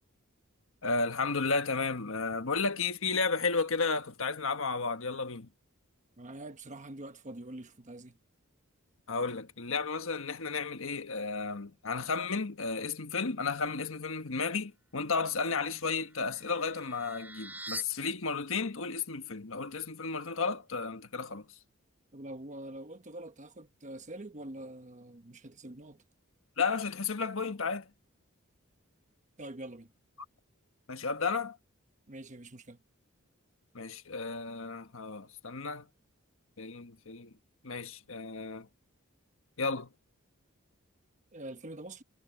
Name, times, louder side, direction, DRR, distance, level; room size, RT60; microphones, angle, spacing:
voice 1, 0.8-5.5 9.1-21.4 26.6-27.9 30.9-31.6 33.7-35.8 36.6-37.3 37.6-38.7 39.6-39.9, left 4 dB, 70° left, 1.5 m, -33 dB
voice 2, 6.2-8.2 22.1-26.0 29.4-29.9 32.1-32.8 41.3-42.0, right 1 dB, 35° right, 1.2 m, -45 dB
sound 1, 15.6-17.8, right 2 dB, 10° right, 7.0 m, -45 dB
head